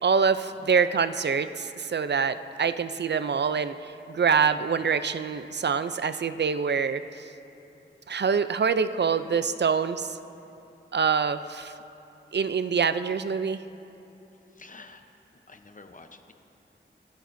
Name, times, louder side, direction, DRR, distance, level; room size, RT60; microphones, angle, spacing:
voice 1, 0.0-7.0 8.1-10.2 10.9-11.7 12.3-13.6, right 6 dB, 60° right, 12 dB, 0.4 m, -25 dB
voice 2, 14.5-15.0 15.5-16.3, left 3 dB, 40° left, 6 dB, 0.8 m, -48 dB
26.5 x 9.2 x 2.6 m, 2.9 s
wide cardioid pair, 65°, 20 cm